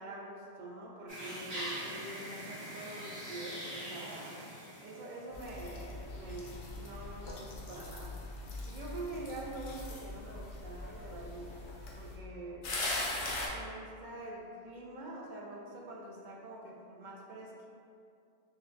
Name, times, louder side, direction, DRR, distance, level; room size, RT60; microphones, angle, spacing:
voice 1, 0.0-4.4 4.8-6.5 6.8-8.2 8.7-11.6 11.9-12.7 13.5-17.7, right 2 dB, 60° right, -2 dB, 0.6 m, -45 dB
sound 1, 1.1-5.4, right 1 dB, 35° right, 1.4 m, -43 dB
sound 2, 5.3-12.2 12.6-13.5, left 2 dB, 70° left, 0.8 m, -41 dB
5.4 x 2.2 x 2.5 m, 2.5 s
omnidirectional pair, 1.1 m